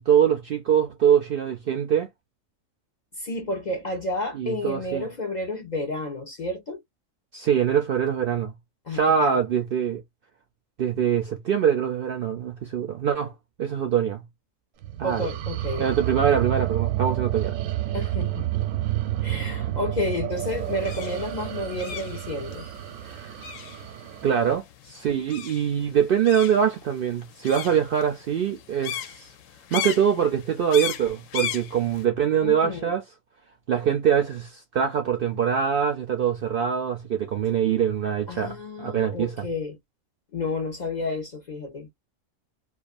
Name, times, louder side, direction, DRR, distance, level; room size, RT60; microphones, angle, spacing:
voice 1, 0.0-2.1 4.3-5.1 7.3-8.5 8.9-10.0 10.8-13.3 13.6-14.2 15.0-15.3 15.8-17.6 23.1-23.3 24.2-29.3 29.7-33.0 33.7-39.5, right 8 dB, 65° right, 0.6 m, -23 dB
voice 2, 3.2-6.8 8.9-9.4 15.0-15.9 17.9-18.5 19.2-22.7 32.4-32.9 38.3-39.8 40.3-41.9, left 2 dB, 50° left, 0.5 m, -31 dB
sound 1, 14.8-24.6, right 14 dB, 85° right, 1.0 m, -30 dB
sound 2, 20.4-32.0, left 9 dB, 80° left, 0.9 m, -37 dB
2.4 x 2.4 x 2.3 m
omnidirectional pair, 1.3 m